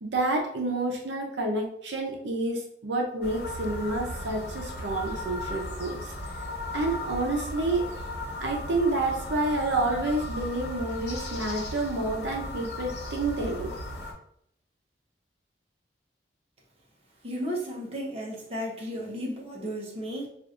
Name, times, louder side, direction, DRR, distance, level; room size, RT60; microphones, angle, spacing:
voice 1, 0.0-6.1 6.7-7.9 8.4-13.7, right 2 dB, 90° right, 1 dB, 0.7 m, -29 dB
sound 1, 3.2-14.1, left 1 dB, 75° left, 1.0 m, -36 dB
voice 2, 17.2-20.3, equal, 35° right, -3 dB, 0.9 m, -34 dB
4.8 x 2.5 x 2.5 m, 0.71 s
head